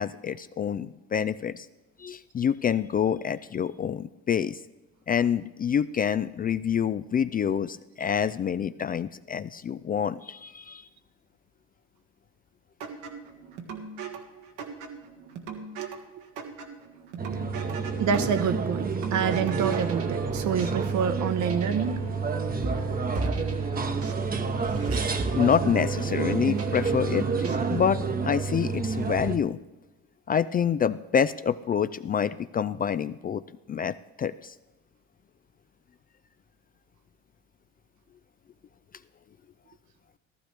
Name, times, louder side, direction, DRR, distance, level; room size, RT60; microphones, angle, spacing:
voice 1, 0.0-1.7 2.0-4.6 5.1-10.9 25.4-27.3 27.7-29.6 30.3-33.4 33.7-34.5, left 8 dB, 30° left, 14 dB, 0.3 m, -27 dB
sound 1, 12.8-19.9, right 7 dB, 80° right, 1.8 m, -38 dB
sound 2, 17.2-29.4, right 4 dB, 25° right, 1.0 m, -29 dB
voice 2, 18.0-22.0, right 7 dB, 60° right, 10 dB, 1.1 m, -27 dB
sound 3, 19.7-28.0, right 3 dB, 45° right, 1.4 m, -37 dB
15.0 x 13.5 x 3.4 m, 1.0 s
supercardioid pair, 85°, 33 cm